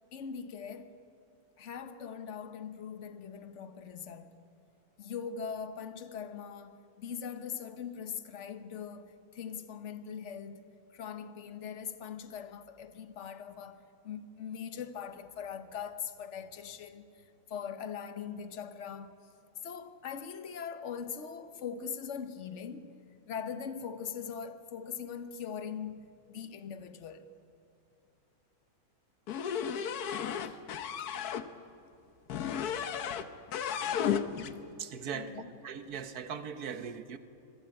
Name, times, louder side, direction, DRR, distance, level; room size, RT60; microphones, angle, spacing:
voice 1, 0.1-1.0 1.6-4.4 5.0-19.2 19.6-22.9 23.3-27.3 30.4-30.6 35.1-35.6, left 7 dB, 55° left, 1.3 m, -41 dB
sound 1, 29.3-31.5 32.3-33.3 33.5-34.5, left 8 dB, 85° left, 1.4 m, -33 dB
voice 2, 34.8-37.2, right 7 dB, 85° right, 1.5 m, -40 dB
25.0 x 16.0 x 9.0 m
omnidirectional pair, 1.6 m